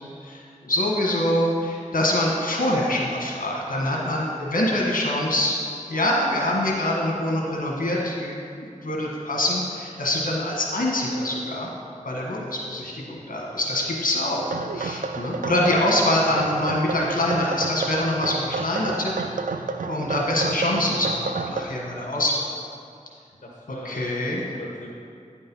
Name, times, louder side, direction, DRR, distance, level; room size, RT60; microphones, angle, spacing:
voice 1, 0.2-5.6 5.9-11.7 12.0-19.1 19.8-22.5 23.8-24.4, left 1 dB, 85° left, -3 dB, 1.5 m, -25 dB
sound 1, 14.4-21.7, right 4 dB, 80° right, 0.4 m, -31 dB
voice 2, 15.3-15.6 16.1-16.5 23.4-25.0, equal, 70° left, -4 dB, 1.2 m, -40 dB
9.5 x 5.4 x 5.5 m, 2.4 s
wide cardioid pair, 50°, 14 cm